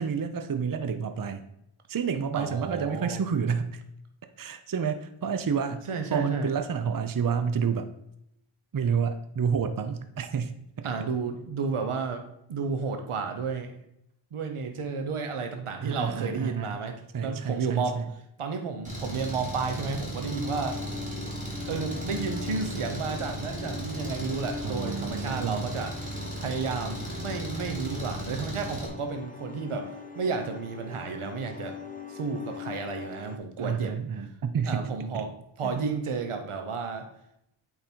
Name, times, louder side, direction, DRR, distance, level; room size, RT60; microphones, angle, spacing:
voice 1, 0.0-1.4 1.9-3.8 4.4-7.9 8.7-10.9 15.8-16.8 17.1-18.1 24.6-25.7 33.6-34.9 35.1-35.3 35.6-35.8, right 6 dB, 45° right, 9 dB, 0.6 m, -29 dB
voice 2, 2.3-3.2 5.9-6.5 10.8-12.2 12.5-13.7 14.3-16.9 17.2-18.0 18.4-20.8 21.7-31.7 32.1-33.9 34.7-37.1, right 5 dB, 80° right, 5 dB, 1.0 m, -32 dB
Engine, 18.8-28.9, equal, 15° right, 2.7 m, -36 dB
sound 1, 20.2-33.4, left 5 dB, 15° left, 0.8 m, -41 dB
8.6 x 3.9 x 4.5 m, 0.78 s
wide cardioid pair, 65°, 50 cm